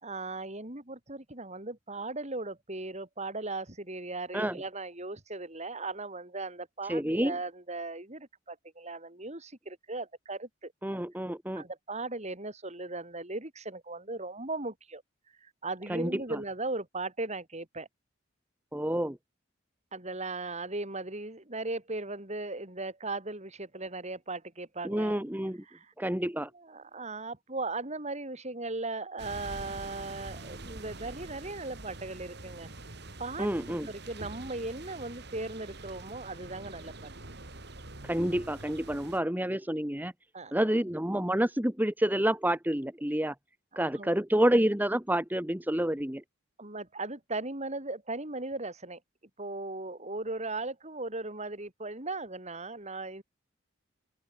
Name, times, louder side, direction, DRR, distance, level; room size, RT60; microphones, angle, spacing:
voice 1, 0.0-10.7 11.6-15.0 15.4-17.9 19.9-25.2 25.7-25.9 26.5-32.7 33.2-37.1 40.3-40.6 43.7-44.2 46.6-49.0 49.4-53.2, right 2 dB, 35° right, 5.1 m, -38 dB
voice 2, 6.9-7.4 10.8-11.7 15.9-16.4 18.7-19.2 24.8-25.6 26.0-26.5 33.4-33.9 38.0-40.1 40.5-43.4 43.8-46.2, right 1 dB, 10° right, 1.7 m, -28 dB
sound 1, 29.2-39.2, right 2 dB, 60° right, 4.0 m, -45 dB
open air
head